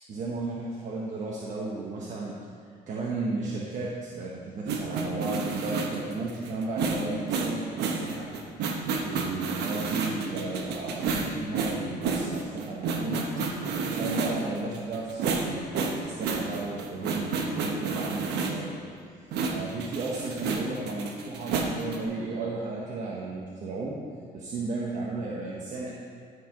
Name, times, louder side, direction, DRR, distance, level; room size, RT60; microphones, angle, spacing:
voice 1, 0.1-2.4 2.9-8.3 9.0-13.3 13.9-18.7 19.2-19.3 19.5-24.0 24.3-25.9, right 3 dB, 45° right, -4 dB, 1.1 m, -34 dB
sound 1, 4.7-18.7 19.3-22.0, right 4 dB, 80° right, 1.0 m, -30 dB
14.0 x 4.7 x 3.7 m, 2.2 s
cardioid pair, 110°, 17 cm